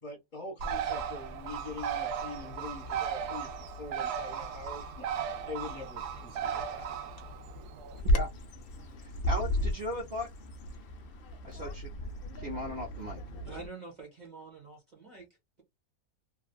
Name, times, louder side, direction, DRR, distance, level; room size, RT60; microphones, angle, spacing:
voice 1, 0.0-5.1 5.5-6.9 11.5-11.6 13.4-13.6, left 3 dB, 30° left, 1.4 m, -44 dB
Bird, 0.6-8.0, right 7 dB, 90° right, 1.2 m, -36 dB
Bird vocalization bird call bird song, 8.0-13.7, equal, 65° left, 0.6 m, -33 dB
voice 2, 9.0-10.3 11.4-11.9 12.3-13.2, left 1 dB, 50° right, 0.8 m, -37 dB
voice 3, 13.5-15.3, right 4 dB, 30° right, 1.0 m, -46 dB
3.2 x 2.2 x 2.2 m
omnidirectional pair, 1.6 m